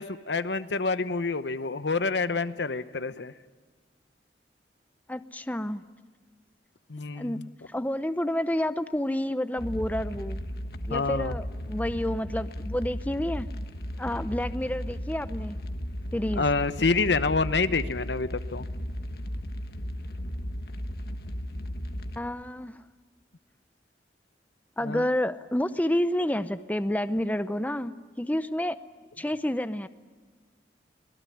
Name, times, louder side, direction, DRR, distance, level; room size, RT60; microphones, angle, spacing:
voice 1, 0.0-3.3 6.9-7.5 10.9-11.4 16.4-18.6 24.8-25.0, left 4 dB, 80° left, 13 dB, 1.0 m, -27 dB
voice 2, 5.1-5.8 7.2-10.4 10.8-13.5 14.0-15.6 16.1-16.4 22.2-22.8 24.8-28.8 29.2-29.9, left 1 dB, 10° left, 12 dB, 0.7 m, -29 dB
sound 1, 9.6-22.2, equal, 60° left, 1.4 m, -35 dB
25.0 x 19.0 x 10.0 m, 1.4 s
head